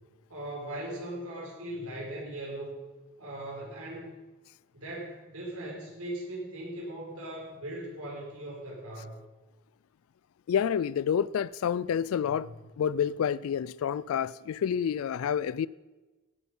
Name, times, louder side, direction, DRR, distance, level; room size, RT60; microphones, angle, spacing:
voice 1, 0.3-2.8 3.2-4.2 4.7-9.1 12.3-12.5, right 1 dB, 90° right, 5.7 m, -39 dB
voice 2, 10.5-12.5 12.8-15.7, left 8 dB, 75° left, 0.3 m, -28 dB
17.0 x 8.5 x 5.5 m
head